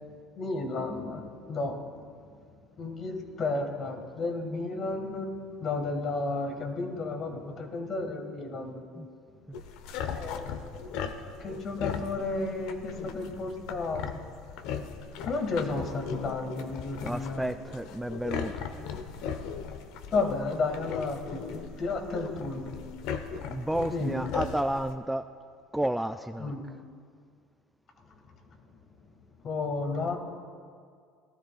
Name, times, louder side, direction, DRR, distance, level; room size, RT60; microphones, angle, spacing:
voice 1, 0.3-1.8 2.8-5.3 5.6-8.8 10.0-10.7 11.3-14.0 15.2-17.5 20.1-22.7 23.9-24.2 26.4-26.6 29.4-30.2, left 3 dB, 45° left, 4 dB, 1.8 m, -32 dB
sound 1, 9.5-24.9, left 7 dB, 65° left, 0.8 m, -38 dB
voice 2, 17.0-18.6 23.5-25.3 25.7-26.7, right 1 dB, 5° right, 10 dB, 0.3 m, -32 dB
18.0 x 12.5 x 2.4 m, 2.2 s
hypercardioid pair, 70°, 0 cm